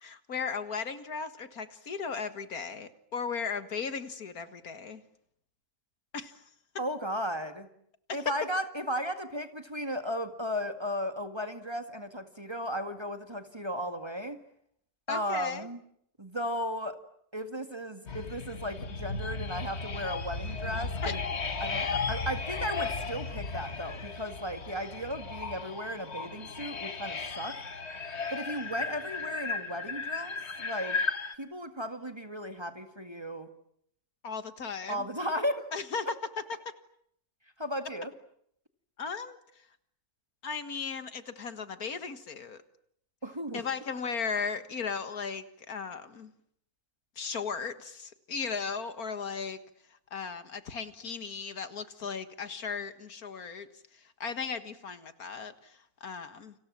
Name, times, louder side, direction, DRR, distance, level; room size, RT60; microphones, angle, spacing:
voice 1, 0.0-5.0 6.1-6.3 8.1-8.3 15.1-15.7 21.0-21.2 34.2-35.0 35.7-36.2 36.7-36.8 39.0-39.4 40.4-42.6 43.5-46.3 47.2-49.6 50.1-53.7 54.2-56.5, left 5 dB, 65° left, 11 dB, 2.1 m, -36 dB
voice 2, 6.8-7.7 8.1-14.4 15.1-15.8 16.2-17.0 17.3-21.2 21.6-27.6 28.3-31.0 31.4-33.5 34.9-35.7 37.6-38.1 43.2-43.6, equal, 15° right, 7 dB, 2.0 m, -35 dB
sound 1, 18.1-31.3, left 4 dB, 40° left, 1.8 m, -35 dB
30.0 x 27.0 x 7.4 m, 0.70 s
omnidirectional pair, 1.7 m